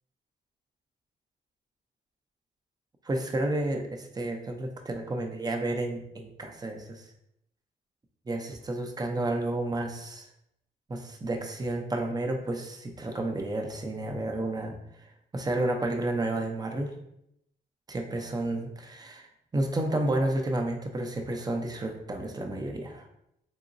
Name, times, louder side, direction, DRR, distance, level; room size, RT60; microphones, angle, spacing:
voice 1, 3.0-7.1 8.3-10.3 10.9-16.9 17.9-23.1, right 1 dB, 20° right, 3 dB, 0.5 m, -31 dB
3.6 x 2.9 x 2.5 m, 0.79 s
cardioid pair, 100°, 18 cm